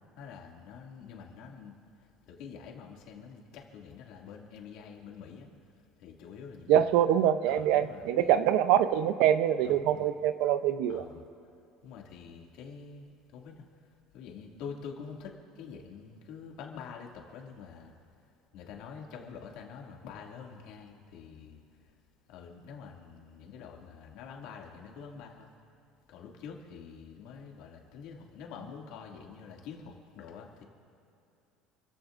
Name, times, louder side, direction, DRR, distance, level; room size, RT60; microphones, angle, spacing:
voice 1, 0.2-1.7 2.3-5.5 6.0-6.9 7.4-8.4 9.6-10.1 10.9-11.3 11.8-13.1 13.3-13.6 14.1-17.9 18.5-21.6 22.3-25.5 26.1-30.6, left 6 dB, 60° left, 0 dB, 2.3 m, -46 dB
voice 2, 6.7-11.0, right 10 dB, 65° right, 12 dB, 0.6 m, -24 dB
29.5 x 15.0 x 2.6 m, 2.7 s
cardioid pair, 170°, 0 cm